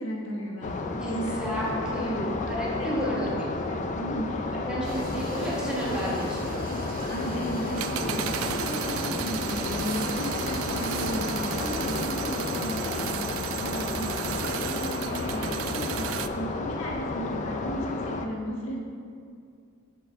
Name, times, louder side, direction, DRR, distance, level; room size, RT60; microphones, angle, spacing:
voice 1, 0.0-0.7 1.0-1.4 1.9-2.2 2.7-3.3 3.7-4.5 7.1-13.1 13.4-18.8, equal, 80° left, -2 dB, 1.2 m, -35 dB
sound 1, 0.6-18.3, left 3 dB, 35° left, 0.4 m, -32 dB
voice 2, 0.9-3.3 4.6-6.6 7.9-8.2 10.1-10.3, equal, 5° right, -6 dB, 1.5 m, -32 dB
sound 2, 4.8-12.0, right 1 dB, 45° right, 0.9 m, -38 dB
sound 3, 7.7-16.3, right 9 dB, 75° right, 0.3 m, -34 dB
7.4 x 7.1 x 3.6 m, 2.2 s
head